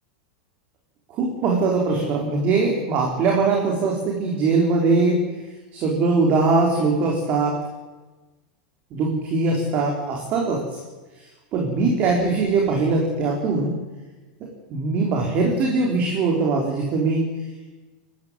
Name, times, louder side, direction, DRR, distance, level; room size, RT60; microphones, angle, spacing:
voice 1, 1.1-5.2 5.7-7.6 8.9-10.8 11.5-13.8 14.4-17.3, right 3 dB, 35° right, -1 dB, 3.8 m, -21 dB
22.5 x 13.5 x 9.7 m, 1.2 s
supercardioid pair, 165°, 5 cm